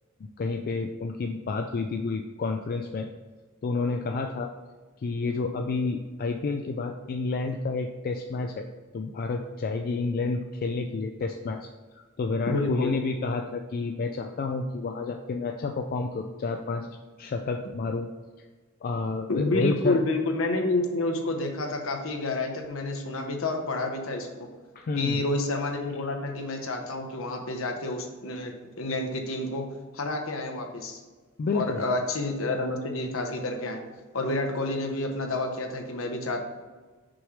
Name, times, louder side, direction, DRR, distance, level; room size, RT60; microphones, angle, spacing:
voice 1, 0.2-3.1 3.6-4.5 5.0-8.7 8.9-11.7 12.2-16.9 17.2-18.1 18.8-20.0 24.8-25.2 31.4-31.8, left 3 dB, 45° left, 4 dB, 0.3 m, -30 dB
voice 2, 12.5-12.9 19.3-24.5 25.0-29.7 29.9-31.0 31.5-33.8 34.1-36.4, left 2 dB, 70° left, 3 dB, 0.9 m, -29 dB
6.1 x 3.2 x 4.9 m, 1.3 s
head